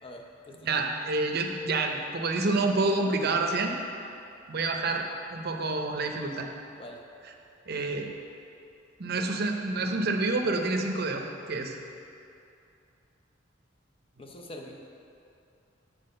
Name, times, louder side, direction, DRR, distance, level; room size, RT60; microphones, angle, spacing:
voice 1, 0.0-0.9 6.7-7.0 14.2-14.7, left 1 dB, 30° left, 1 dB, 0.7 m, -45 dB
voice 2, 0.6-3.8 4.5-6.5 7.7-8.1 9.0-11.8, right 3 dB, 55° right, 3 dB, 0.7 m, -28 dB
7.5 x 4.9 x 6.5 m, 2.6 s
head